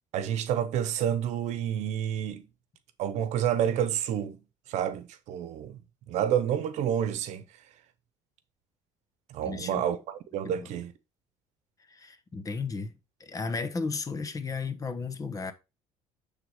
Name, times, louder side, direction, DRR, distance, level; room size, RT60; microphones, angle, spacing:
voice 1, 0.1-2.5 3.0-4.4 4.7-5.8 6.1-7.4 9.3-10.9, right 9 dB, 70° right, 0.9 m, -29 dB
voice 2, 9.4-9.9 10.4-10.7 11.9-12.9 13.2-15.5, left 4 dB, 30° left, 1.0 m, -34 dB
7.8 x 3.6 x 5.0 m
cardioid pair, 100°, 12 cm